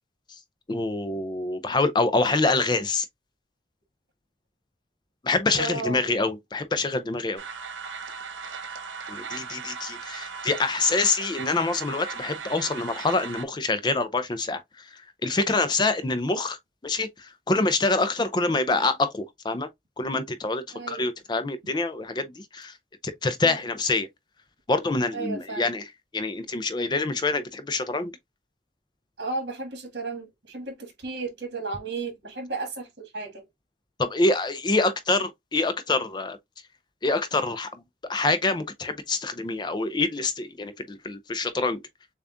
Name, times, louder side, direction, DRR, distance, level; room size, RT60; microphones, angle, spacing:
voice 1, 0.7-3.1 5.2-7.4 9.1-16.6 16.8-19.7 20.0-22.7 23.0-24.1 24.7-28.1 34.0-36.4 37.0-37.8 38.1-41.8, left 3 dB, 25° left, 0.4 m, -26 dB
voice 2, 5.6-6.0 20.7-21.0 23.4-23.6 25.1-25.7 29.2-33.4, right 3 dB, 60° right, 1.8 m, -34 dB
sound 1, 7.4-13.4, right 5 dB, 80° right, 1.1 m, -37 dB
6.9 x 2.3 x 2.5 m
head